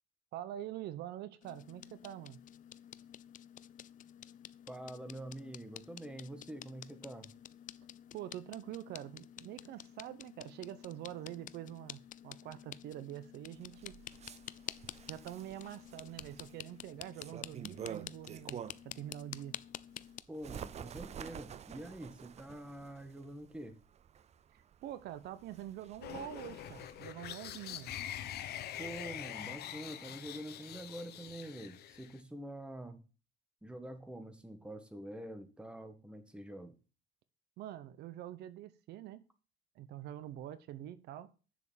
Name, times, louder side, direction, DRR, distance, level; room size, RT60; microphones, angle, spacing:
voice 1, 0.3-2.4 8.1-14.0 15.1-19.5 24.8-27.9 37.6-39.3 39.8-41.3, right 12 dB, 80° right, 0.8 m, -45 dB
sound 1, 1.4-20.2, left 11 dB, 50° left, 0.5 m, -50 dB
voice 2, 4.7-7.3 20.3-23.8 28.8-33.0 33.6-36.7, right 1 dB, 5° right, 1.6 m, -46 dB
Bird, 13.6-19.0 19.4-27.1, right 8 dB, 40° right, 0.6 m, -49 dB
sound 2, 26.0-32.2, left 11 dB, 70° left, 1.0 m, -44 dB
7.0 x 7.0 x 7.3 m
cardioid pair, 110°, 17 cm